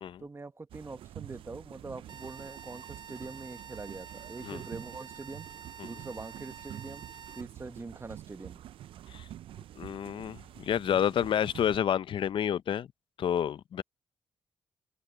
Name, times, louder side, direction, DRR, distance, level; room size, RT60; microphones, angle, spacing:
voice 1, 0.2-5.5 5.8-7.0 7.3-8.6, right 3 dB, 25° right, 1.3 m, -43 dB
sound 1, 0.7-11.8, right 12 dB, 70° right, 0.4 m, -47 dB
sound 2, 2.1-7.4, right 7 dB, 55° right, 3.2 m, -48 dB
voice 2, 9.8-12.9 13.2-13.8, left 9 dB, 65° left, 0.6 m, -29 dB
supercardioid pair, 55°, 9 cm